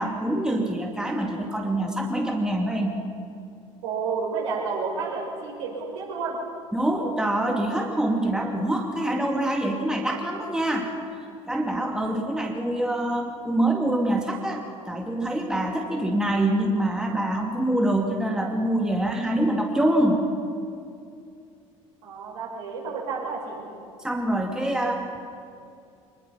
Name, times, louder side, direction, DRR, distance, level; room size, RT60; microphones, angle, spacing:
voice 1, 0.0-2.9 6.7-10.9 11.5-20.2 24.0-25.2, right 1 dB, 5° right, 1 dB, 2.3 m, -25 dB
voice 2, 3.8-6.4 22.0-23.6, right 5 dB, 65° right, -3 dB, 6.5 m, -30 dB
25.0 x 21.0 x 5.9 m, 2.5 s
figure-of-eight pair, 65°, 17 cm